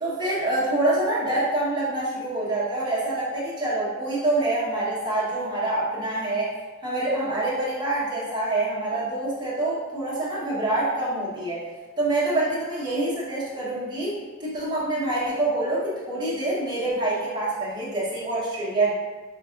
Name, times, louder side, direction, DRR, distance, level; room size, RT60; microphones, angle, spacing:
voice 1, 0.0-6.5 6.8-11.6 12.0-18.9, right 2 dB, 25° right, -9 dB, 1.2 m, -26 dB
5.5 x 2.4 x 2.5 m, 1.3 s
head